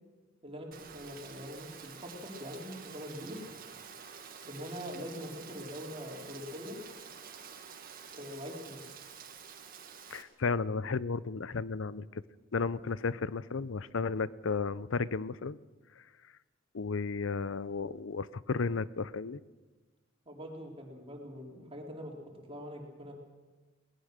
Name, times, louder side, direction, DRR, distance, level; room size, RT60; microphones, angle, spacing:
voice 1, 0.4-3.4 4.4-6.8 8.1-8.8 20.3-22.1 22.5-23.1, equal, 30° right, 0 dB, 3.6 m, -43 dB
Rain, 0.7-10.2, right 6 dB, 45° right, 1.8 m, -49 dB
voice 2, 10.1-12.2 12.5-15.6 16.7-19.4, left 4 dB, 70° left, 18 dB, 0.6 m, -33 dB
21.0 x 19.0 x 6.6 m, 1.3 s
head